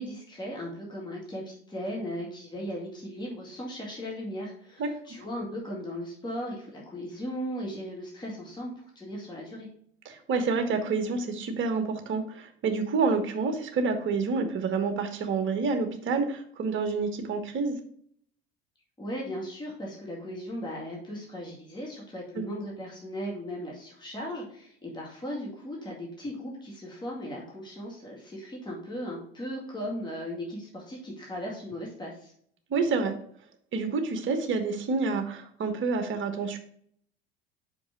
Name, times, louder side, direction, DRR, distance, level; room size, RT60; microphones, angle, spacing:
voice 1, 0.0-9.7 19.0-32.3, equal, 15° left, -3 dB, 2.1 m, -37 dB
voice 2, 10.0-17.8 22.4-22.5 32.7-33.1 33.7-36.6, right 4 dB, 40° right, 7 dB, 1.2 m, -28 dB
5.5 x 5.2 x 4.7 m, 0.63 s
figure-of-eight pair, 70°, 32 cm